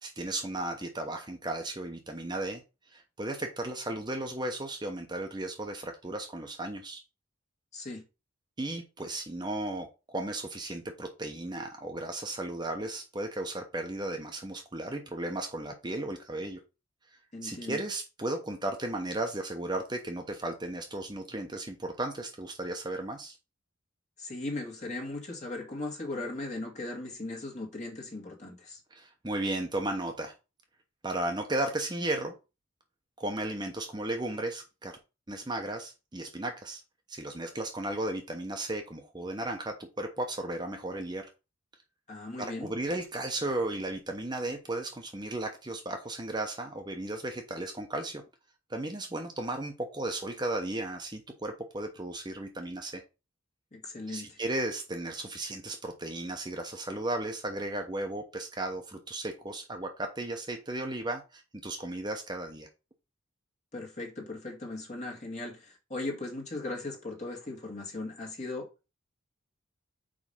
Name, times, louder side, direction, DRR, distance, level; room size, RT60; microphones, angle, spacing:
voice 1, 0.0-2.6 2.9-7.0 8.6-9.9 10.1-16.6 17.4-23.4 28.9-30.3 31.0-32.3 33.2-34.9 35.3-36.8 37.1-41.3 42.4-48.2 48.7-53.0 54.1-62.7, right 1 dB, 20° right, 0.9 m, -35 dB
voice 2, 7.7-8.0 17.3-17.8 24.2-28.8 42.1-42.7 53.7-54.4 63.7-68.7, left 2 dB, 35° left, 2.1 m, -38 dB
5.2 x 4.8 x 5.6 m
head